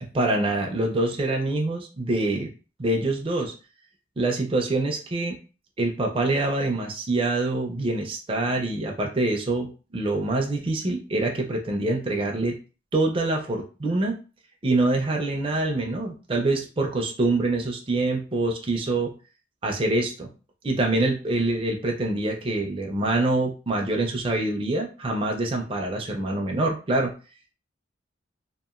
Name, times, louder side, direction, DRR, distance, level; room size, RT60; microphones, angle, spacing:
voice 1, 0.0-2.5 2.8-3.5 4.2-5.4 5.8-12.6 12.9-14.2 14.6-19.1 19.6-20.3 20.6-27.1, right 2 dB, 25° right, 1 dB, 0.4 m, -25 dB
2.8 x 2.5 x 2.4 m, 0.35 s
head